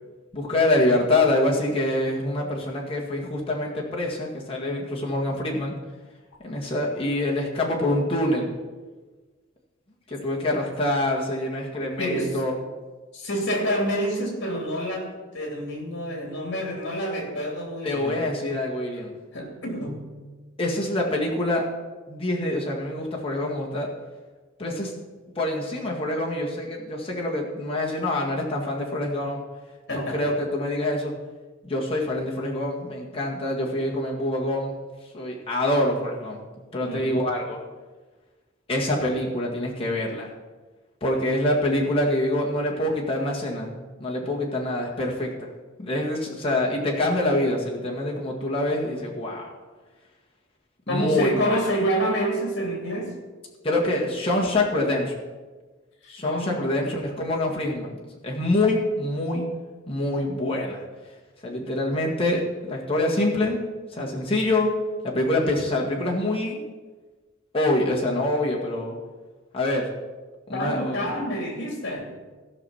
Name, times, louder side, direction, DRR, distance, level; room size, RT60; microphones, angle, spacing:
voice 1, 0.3-5.8 6.4-8.5 10.1-12.5 17.8-19.1 20.6-21.7 22.1-23.9 24.6-24.9 25.4-29.4 29.9-31.1 31.6-34.7 35.1-36.4 36.7-37.6 38.7-40.3 41.0-45.5 45.8-49.5 50.9-51.6 53.6-55.2 56.1-59.5 59.9-60.8 61.4-63.6 63.9-64.7 65.0-66.7 67.5-69.0 69.5-69.9 70.5-71.2, left 1 dB, 30° left, -2 dB, 1.9 m, -25 dB
voice 2, 12.0-12.4 13.1-18.2 19.3-20.1 29.9-30.3 36.8-37.2 50.9-53.1 56.0-56.6 70.5-72.1, equal, 55° left, 1 dB, 3.0 m, -28 dB
15.0 x 6.0 x 5.7 m, 1.3 s
head